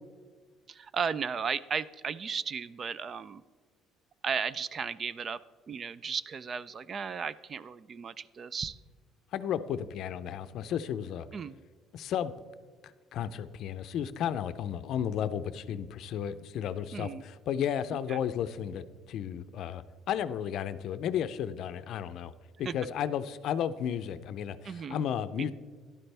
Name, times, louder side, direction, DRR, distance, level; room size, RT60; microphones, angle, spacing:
voice 1, 0.7-3.4 4.2-5.4 5.7-8.8 11.3-11.6 16.9-17.2 18.1-18.2 22.6-22.7 24.6-25.0, right 6 dB, 35° right, 18 dB, 0.3 m, -35 dB
voice 2, 9.3-11.3 11.9-12.3 13.1-22.3 22.6-25.5, left 9 dB, 60° left, 13 dB, 0.5 m, -33 dB
13.0 x 11.5 x 3.4 m, 1.5 s
cardioid pair, 150°, 0 cm